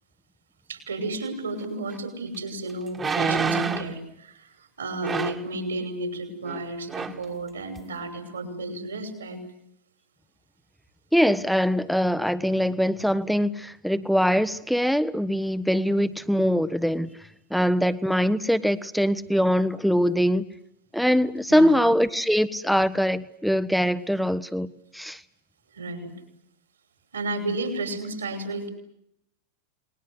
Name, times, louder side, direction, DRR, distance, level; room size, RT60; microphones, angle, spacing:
voice 1, 0.7-9.4 21.5-21.8 25.7-26.1 27.1-28.7, right 2 dB, 70° right, 8 dB, 6.1 m, -32 dB
sound 1, 1.9-2.0 2.9-4.0 5.0-5.5 6.5-6.6 6.9-7.2 7.8-7.9, right 5 dB, 20° right, 2.0 m, -27 dB
voice 2, 11.1-17.1 17.5-20.4 20.9-25.2, equal, ahead, 14 dB, 1.2 m, -23 dB
29.5 x 21.0 x 8.1 m, 0.77 s
figure-of-eight pair, 90°, 0 cm